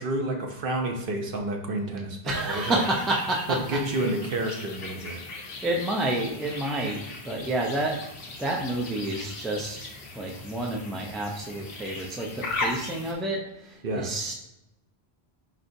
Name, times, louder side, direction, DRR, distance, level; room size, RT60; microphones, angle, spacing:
voice 1, 0.0-2.8 3.5-5.2 13.8-14.1, right 2 dB, 60° right, 3 dB, 0.8 m, -29 dB
voice 2, 2.2-3.6 5.6-8.0 8.4-9.9 10.1-14.3, right 1 dB, ahead, -1 dB, 0.3 m, -29 dB
sound 1, 2.3-13.1, left 2 dB, 65° left, 1.0 m, -38 dB
4.3 x 4.2 x 2.6 m, 0.89 s
omnidirectional pair, 1.1 m